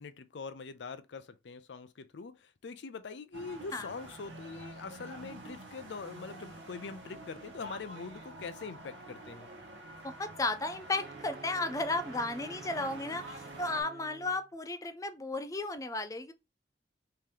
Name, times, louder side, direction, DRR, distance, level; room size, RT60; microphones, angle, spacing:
voice 1, 0.0-9.5, left 4 dB, 75° left, 0.5 m, -43 dB
sound 1, 3.3-13.8, right 2 dB, 90° right, 0.9 m, -48 dB
voice 2, 10.0-16.3, left 2 dB, 20° left, 0.4 m, -34 dB
sound 2, 10.9-14.5, right 4 dB, 55° right, 0.5 m, -51 dB
3.3 x 2.8 x 3.7 m
head